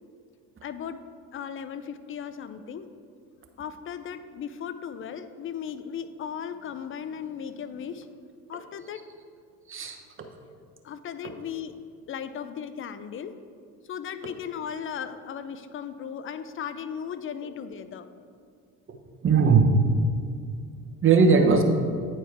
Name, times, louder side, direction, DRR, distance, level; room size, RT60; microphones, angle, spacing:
voice 1, 0.6-1.0 1.3-2.9 3.6-8.1 8.5-9.0 10.8-11.7 12.1-13.4 13.8-18.1 21.2-21.6, left 8 dB, 30° left, 12 dB, 0.5 m, -36 dB
voice 2, 18.9-19.8 21.0-21.6, right 5 dB, 30° right, 4 dB, 1.0 m, -19 dB
8.7 x 4.5 x 4.6 m, 2.2 s
hypercardioid pair, 75°, 42 cm